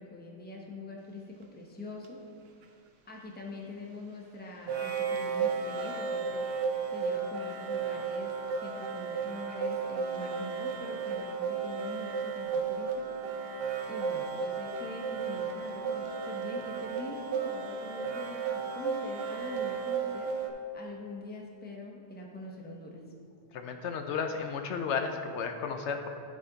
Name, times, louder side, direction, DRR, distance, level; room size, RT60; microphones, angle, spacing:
voice 1, 0.0-2.2 3.1-6.5 6.9-13.1 13.5-13.6 13.9-20.3 20.7-23.0, left 2 dB, 10° left, -1 dB, 0.7 m, -44 dB
sound 1, 2.0-2.1 4.7-20.5, right 5 dB, 65° right, 0.8 m, -34 dB
voice 2, 23.5-26.1, left 5 dB, 75° left, 5 dB, 0.9 m, -33 dB
11.0 x 4.2 x 3.8 m, 2.3 s
omnidirectional pair, 1.2 m